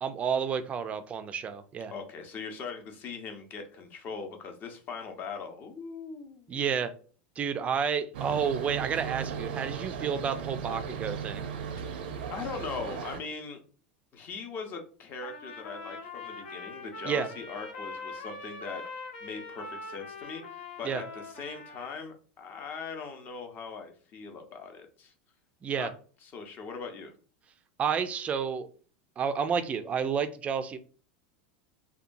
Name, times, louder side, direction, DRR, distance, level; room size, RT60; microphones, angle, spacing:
voice 1, 0.0-1.9 6.5-6.9 7.4-11.5 17.0-17.3 20.8-21.0 25.6-25.9 27.8-28.7 29.2-30.8, right 7 dB, 25° right, 11 dB, 0.3 m, -30 dB
voice 2, 1.9-6.6 12.3-13.6 14.1-25.1 25.7-25.9 26.2-27.1, left 5 dB, 35° left, 5 dB, 0.6 m, -40 dB
sound 1, 8.1-13.2, right 7 dB, 85° right, 0.5 m, -36 dB
Trumpet, 15.2-22.0, left 3 dB, 80° left, 0.7 m, -42 dB
2.7 x 2.2 x 2.5 m, 0.40 s
supercardioid pair, 130°, 5 cm